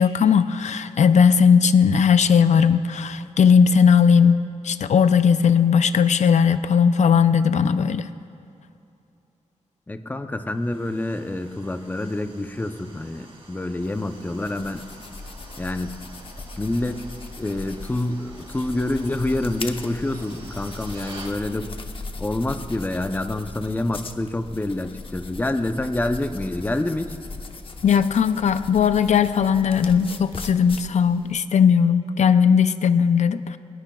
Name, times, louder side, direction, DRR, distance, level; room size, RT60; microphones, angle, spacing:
voice 1, 0.0-8.1 27.8-33.6, left 6 dB, 80° left, 11 dB, 0.5 m, -18 dB
voice 2, 9.9-14.8 15.6-15.9 16.6-17.1 17.4-21.7 22.2-27.1, left 1 dB, 15° left, 7 dB, 0.6 m, -27 dB
sound 1, 10.5-21.4, right 2 dB, 50° right, 2.7 m, -47 dB
sound 2, 13.8-31.3, left 3 dB, 50° left, 0.9 m, -38 dB
24.0 x 20.5 x 2.3 m, 2.7 s
wide cardioid pair, 130°, 12 cm